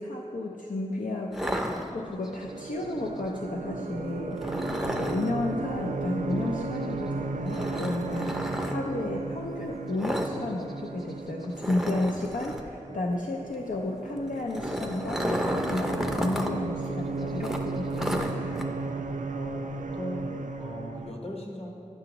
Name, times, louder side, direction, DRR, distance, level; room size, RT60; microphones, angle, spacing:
voice 1, 0.0-18.6, left 2 dB, 70° left, -1 dB, 0.4 m, -33 dB
sound 1, 1.3-2.4 4.4-5.3 7.5-8.7 10.0-10.4 10.6-10.8 11.1-11.2 11.6-12.7 14.3-16.5 16.8-16.9 17.4-18.6, equal, ahead, 0.5 m, -32 dB
sound 2, 1.8-21.1, right 3 dB, 70° right, 0.4 m, -35 dB
voice 2, 19.3-19.7 19.9-21.7, left 1 dB, 50° left, 0 dB, 1.1 m, -38 dB
9.8 x 5.9 x 2.9 m, 2.5 s
wide cardioid pair, 50°, 14 cm